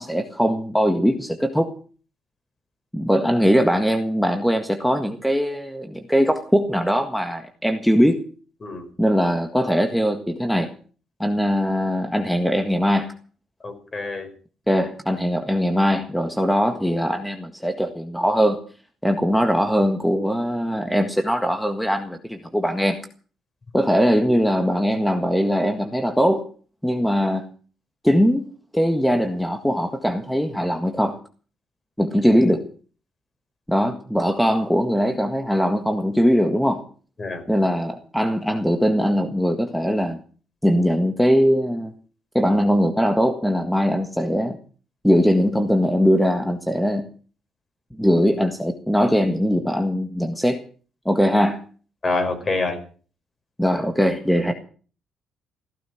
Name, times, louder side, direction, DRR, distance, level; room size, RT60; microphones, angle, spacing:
voice 1, 0.0-1.7 2.9-8.2 9.0-10.7 11.2-13.1 14.7-18.6 19.0-23.1 23.7-26.5 26.8-27.4 28.0-31.2 32.0-32.6 33.7-36.8 37.5-40.2 40.6-41.9 42.3-44.6 45.0-47.1 48.0-50.6 51.0-51.6 53.6-54.5, equal, ahead, 6 dB, 1.7 m, -21 dB
voice 2, 13.6-14.3 37.2-37.4 52.0-52.8, left 3 dB, 35° left, 7 dB, 5.1 m, -26 dB
15.5 x 14.0 x 6.1 m, 0.42 s
cardioid pair, 90°, 0 cm